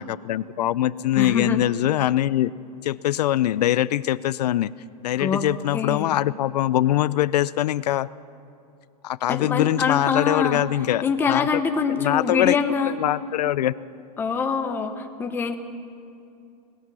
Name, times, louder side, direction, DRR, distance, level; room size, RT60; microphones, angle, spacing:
voice 1, 0.0-2.5 2.8-4.7 5.0-8.1 9.0-11.6 11.9-12.6 12.9-13.7, left 13 dB, 75° left, 18 dB, 0.5 m, -23 dB
voice 2, 1.2-1.6 5.2-5.5 5.7-6.2 9.3-10.6 11.0-12.9 14.2-15.6, left 5 dB, 10° left, 6 dB, 0.8 m, -24 dB
21.5 x 19.5 x 6.2 m, 2.5 s
supercardioid pair, 165°, 21 cm